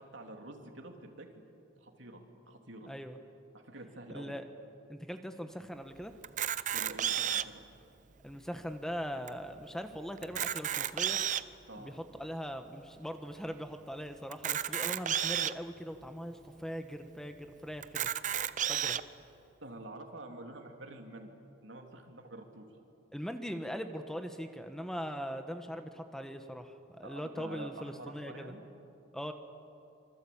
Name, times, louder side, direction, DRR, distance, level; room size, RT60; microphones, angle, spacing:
voice 1, 0.0-1.4 1.8-2.9 3.5-4.3 6.7-7.6 11.7-11.9 19.6-21.3 21.6-22.7 27.0-28.6, right 2 dB, 80° right, 3 dB, 3.2 m, -47 dB
voice 2, 2.9-3.2 4.1-4.4 4.9-6.1 8.2-11.2 11.8-18.1 18.7-19.0 23.1-28.5 29.1-29.3, equal, 5° left, 7 dB, 1.2 m, -41 dB
Camera, 6.2-7.6 8.3-8.4 8.6-8.7 9.3-9.4 10.2-11.5 12.2-12.3 14.3-15.5 16.3-16.4 16.6-16.7 17.8-19.0, right 9 dB, 40° right, 0.7 m, -32 dB
26.0 x 25.0 x 8.7 m, 2.7 s
head